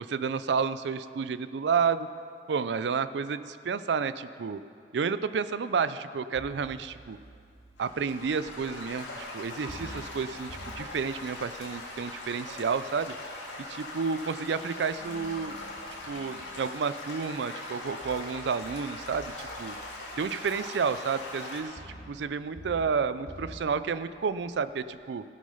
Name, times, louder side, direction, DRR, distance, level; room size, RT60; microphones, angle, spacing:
voice 1, 0.1-2.1 2.5-4.6 4.9-7.2 7.8-13.1 13.7-15.6 16.1-19.8 20.2-21.8 22.1-25.2, right 5 dB, 75° right, 14 dB, 0.4 m, -30 dB
sound 1, 6.3-9.4 9.7-17.2 18.0-24.7, equal, 60° left, 2.5 m, -50 dB
Stream / Gurgling / Trickle dribble, 7.8-21.6, left 2 dB, 85° left, 2.3 m, -41 dB
15.5 x 6.3 x 5.5 m, 2.4 s
head